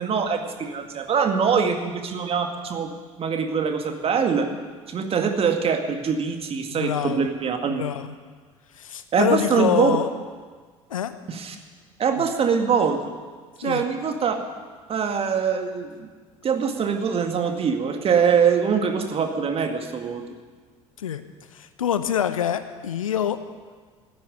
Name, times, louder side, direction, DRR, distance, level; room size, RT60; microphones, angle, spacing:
voice 1, 0.0-2.9 3.2-4.5 4.9-7.8 9.1-9.9 11.3-11.6 12.0-13.1 13.6-14.4 14.9-16.1 16.4-20.2, right 6 dB, 35° right, 5 dB, 2.1 m, -23 dB
voice 2, 6.7-7.2 7.6-8.2 8.7-10.1 10.9-11.1 12.2-12.3 13.6-13.9 21.0-21.2 21.5-23.4, left 9 dB, 75° left, 11 dB, 0.9 m, -26 dB
15.0 x 10.0 x 9.7 m, 1.5 s
figure-of-eight pair, 65°, 17 cm